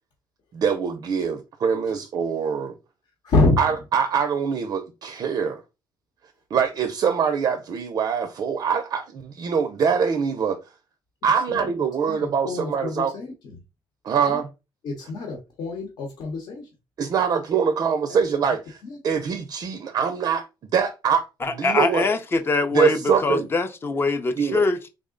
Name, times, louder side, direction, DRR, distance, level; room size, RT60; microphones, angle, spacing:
voice 1, 0.5-2.7 3.6-5.6 6.5-10.6 11.2-13.1 14.0-14.5 17.0-20.5 20.7-22.1 22.7-23.5 24.4-24.6, right 6 dB, 45° right, 0.4 m, -24 dB
voice 2, 3.2-3.6 11.5-11.7 12.1-13.6 14.3-14.4 14.8-16.7 18.8-19.0, left 2 dB, 60° left, 0.9 m, -26 dB
voice 3, 21.4-24.9, left 3 dB, 25° left, 0.5 m, -23 dB
3.6 x 2.0 x 3.7 m
cardioid pair, 130°, 9 cm